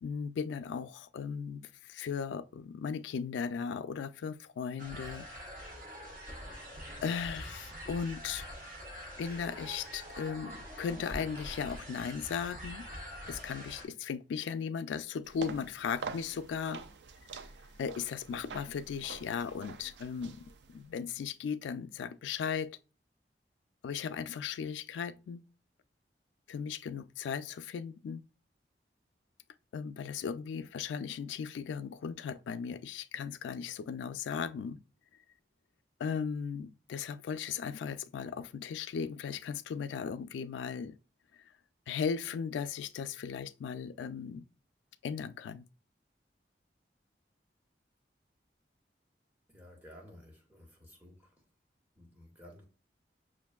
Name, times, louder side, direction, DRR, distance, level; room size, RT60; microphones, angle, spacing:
voice 1, 0.0-5.3 7.0-8.5 9.2-12.9 13.3-16.8 17.8-22.8 23.8-25.4 26.5-28.3 29.7-34.8 36.0-41.0 41.9-44.4 45.0-45.7, left 6 dB, 90° left, 0.3 m, -37 dB
sound 1, 4.8-13.8, equal, 45° right, 1.2 m, -45 dB
sound 2, 15.2-20.9, right 5 dB, 80° right, 0.4 m, -46 dB
voice 2, 49.5-51.5 51.9-52.6, equal, 10° right, 0.9 m, -54 dB
5.9 x 2.5 x 2.3 m
head